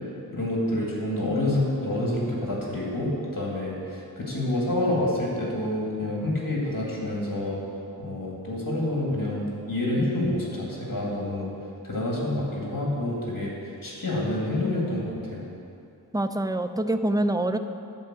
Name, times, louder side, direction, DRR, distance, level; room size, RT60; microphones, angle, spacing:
voice 1, 0.3-7.6 8.0-11.5 11.8-13.5 13.8-15.5, left 1 dB, 60° left, -4 dB, 2.2 m, -28 dB
voice 2, 16.1-17.6, right 1 dB, 10° right, 9 dB, 0.4 m, -25 dB
11.0 x 4.5 x 7.4 m, 2.6 s
wide cardioid pair, 60°, 38 cm